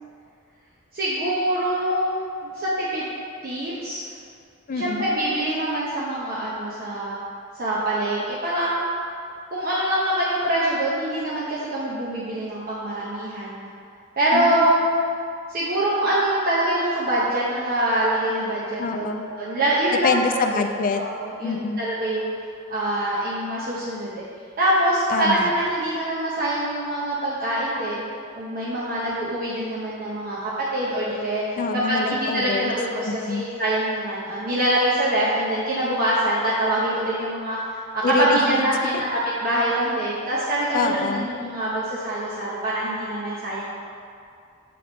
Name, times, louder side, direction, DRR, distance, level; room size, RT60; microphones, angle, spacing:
voice 1, 0.9-2.1 2.4-3.1 3.4-4.0 4.7-7.2 7.6-8.8 9.5-13.7 14.2-14.7 15.5-19.1 19.4-20.7 21.0-22.3 22.7-24.2 24.6-28.0 28.4-31.6 31.9-37.6 37.9-43.7, right 1 dB, 45° right, -7 dB, 0.8 m, -24 dB
voice 2, 4.7-5.1 14.3-15.2 18.8-19.2 20.0-21.0 21.4-21.8 25.1-25.5 31.6-32.7 33.0-33.4 38.0-38.6 38.9-39.0 40.7-41.3, left 4 dB, 40° left, 5 dB, 0.4 m, -25 dB
7.7 x 3.5 x 3.9 m, 2.4 s
head